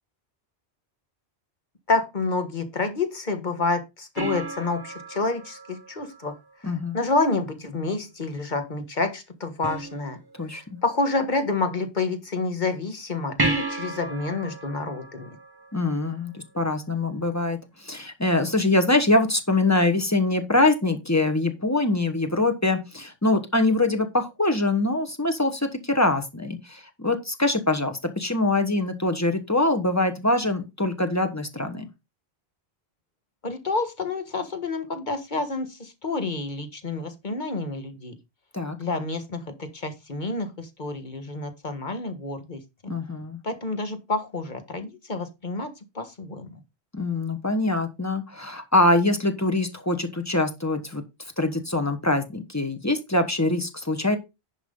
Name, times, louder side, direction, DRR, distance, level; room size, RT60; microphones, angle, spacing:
voice 1, 1.9-6.4 6.9-10.2 10.5-15.4 33.4-38.1 38.8-42.6 43.4-46.6, left 3 dB, 45° left, 8 dB, 1.6 m, -28 dB
sound 1, 4.2-6.8 9.6-10.6 13.4-16.3 19.4-19.5, right 2 dB, 20° right, 1.4 m, -33 dB
voice 2, 6.6-7.0 10.4-10.8 15.7-31.9 38.5-38.8 42.9-43.4 46.9-51.0 51.4-54.2, left 2 dB, 15° left, 6 dB, 1.2 m, -24 dB
10.0 x 5.8 x 3.8 m, 0.24 s
omnidirectional pair, 1.1 m